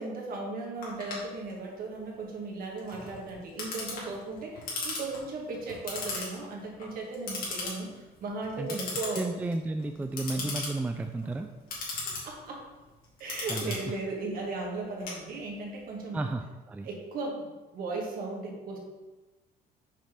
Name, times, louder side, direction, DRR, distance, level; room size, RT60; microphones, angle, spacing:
voice 1, 0.0-9.3 10.3-10.5 12.2-12.6 13.2-16.2 16.8-18.8, right 3 dB, 60° right, -1 dB, 1.8 m, -37 dB
Clock, 0.8-15.8, left 3 dB, 60° left, 2.2 m, -39 dB
voice 2, 9.2-11.5 13.5-13.7 16.1-16.9, right 2 dB, 10° right, 6 dB, 0.3 m, -32 dB
6.0 x 3.2 x 5.7 m, 1.2 s
cardioid pair, 110°, 17 cm